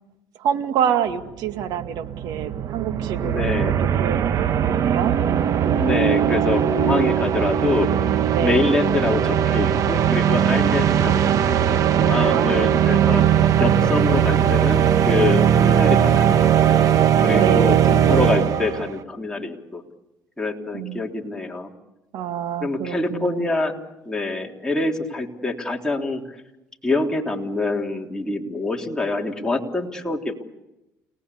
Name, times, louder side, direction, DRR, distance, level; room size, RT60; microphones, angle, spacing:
voice 1, 0.4-5.1 8.3-8.7 12.3-12.9 17.3-17.9 20.7-21.0 22.1-23.5, right 8 dB, 70° right, 8 dB, 2.0 m, -27 dB
sound 1, 1.2-1.3 1.5-18.9, right 9 dB, 55° right, 1.3 m, -19 dB
voice 2, 3.2-3.8 5.6-7.9 8.4-13.2 13.6-16.8 17.2-19.8 20.4-21.7 22.6-23.8 24.1-26.2 26.8-30.4, left 2 dB, 10° left, 0 dB, 3.5 m, -25 dB
30.0 x 19.0 x 8.5 m, 0.95 s
supercardioid pair, 95°, 7 cm